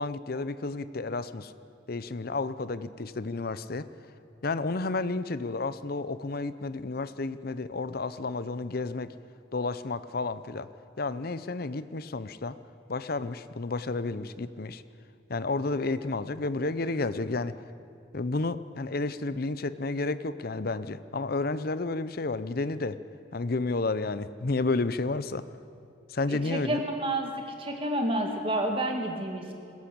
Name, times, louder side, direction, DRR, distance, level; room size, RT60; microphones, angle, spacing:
voice 1, 0.0-1.5 1.9-3.9 4.4-9.1 9.5-10.7 11.0-12.5 12.9-14.8 15.3-17.5 18.1-23.0 23.3-25.4 26.1-26.8, left 3 dB, 55° left, 14 dB, 0.7 m, -31 dB
voice 2, 26.3-27.3 27.6-29.5, right 1 dB, 30° right, 2 dB, 2.4 m, -29 dB
20.5 x 16.5 x 8.6 m, 2.5 s
head